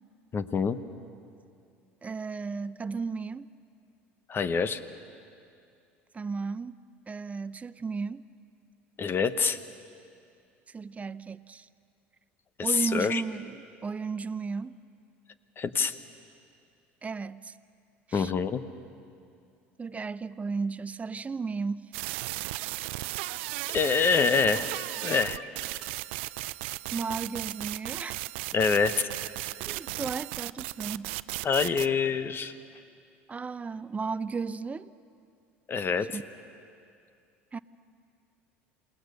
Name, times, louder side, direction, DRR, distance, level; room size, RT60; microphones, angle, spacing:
voice 1, 0.3-0.8 4.3-4.8 9.0-9.6 12.6-13.2 15.6-16.0 18.1-18.6 23.7-24.7 25.0-25.4 28.5-29.1 31.4-32.5 35.7-36.1, left 5 dB, 35° left, 13 dB, 1.1 m, -26 dB
voice 2, 2.0-3.5 6.1-6.7 7.1-8.3 10.7-11.7 12.6-14.8 17.0-17.5 18.1-18.3 19.8-21.8 26.9-28.2 29.6-31.1 33.3-34.9 36.1-36.2 37.5-37.6, right 4 dB, 20° right, 15 dB, 0.6 m, -34 dB
sound 1, 21.9-31.9, right 20 dB, 70° right, 0.4 m, -35 dB
28.0 x 18.5 x 6.8 m, 2.4 s
hypercardioid pair, 75°, 7 cm